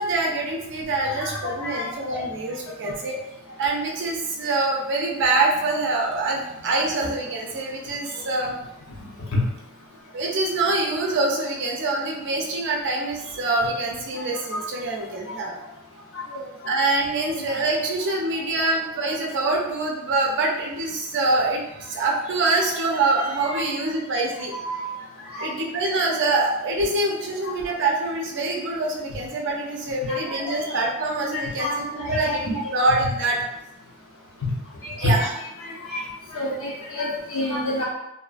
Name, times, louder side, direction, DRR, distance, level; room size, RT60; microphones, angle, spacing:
voice 1, 0.0-3.2 3.6-8.6 10.1-15.5 16.6-24.5 25.4-31.7 31.9-33.4 35.0-35.3, right 2 dB, 55° right, 0 dB, 0.5 m, -25 dB
voice 2, 1.2-2.2 2.8-3.0 9.3-9.4 15.3-15.4 16.1-16.4 17.3-17.4 22.9-23.0 23.4-23.7 24.5-24.8 25.3-25.5 27.4-27.5 30.1-31.1 31.3-32.4 32.6-32.9 34.8-35.3 35.8-36.0 36.3-37.9, left 1 dB, 65° left, -3 dB, 0.7 m, -29 dB
2.6 x 2.3 x 2.4 m, 0.88 s
head